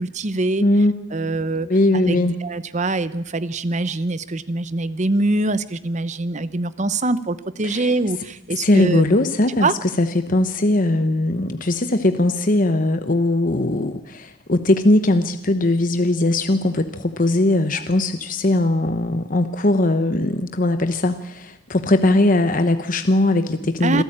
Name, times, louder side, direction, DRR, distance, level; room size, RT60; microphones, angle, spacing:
voice 1, 0.0-0.7 1.1-9.0 9.6-9.8 17.7-17.8 23.8-24.0, right 2 dB, 40° right, 15 dB, 0.9 m, -24 dB
voice 2, 0.6-1.3 1.7-2.3 7.6-7.9 8.6-9.7 10.0-24.0, left 2 dB, 45° left, 9 dB, 1.0 m, -19 dB
27.0 x 13.0 x 8.8 m, 0.92 s
head